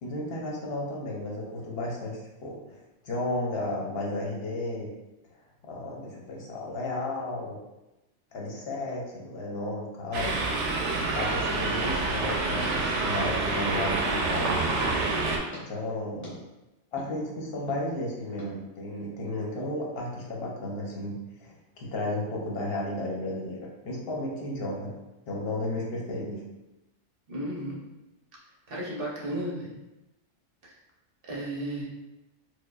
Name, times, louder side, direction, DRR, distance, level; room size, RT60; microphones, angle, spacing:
voice 1, 0.0-2.8 3.0-4.9 5.6-7.6 8.3-10.6 11.1-14.6 15.6-16.4 16.9-24.9 25.3-26.4 31.8-31.9, left 1 dB, 60° left, -2 dB, 0.8 m, -33 dB
sound 1, 10.1-15.4, right 3 dB, 80° right, 0.9 m, -27 dB
sound 2, 15.5-15.6 16.2-16.3 17.0-17.1 17.7-17.8 18.4-18.5, left 2 dB, 10° left, 1.1 m, -46 dB
voice 2, 27.3-27.8 28.7-29.7 30.6-30.7 31.3-31.8, right 1 dB, 55° right, -5 dB, 0.9 m, -33 dB
4.5 x 2.2 x 2.3 m, 1.0 s
omnidirectional pair, 1.2 m